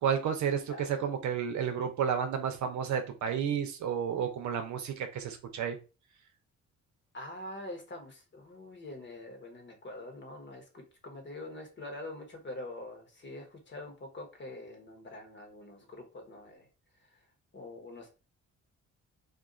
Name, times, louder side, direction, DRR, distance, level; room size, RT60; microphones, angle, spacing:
voice 1, 0.0-5.8, right 7 dB, 70° right, 6 dB, 0.7 m, -31 dB
voice 2, 0.7-1.1 7.1-16.7 17.1-17.2 17.5-18.1, left 1 dB, 40° left, 3 dB, 1.1 m, -45 dB
2.6 x 2.4 x 3.8 m, 0.32 s
cardioid pair, 90°, 30 cm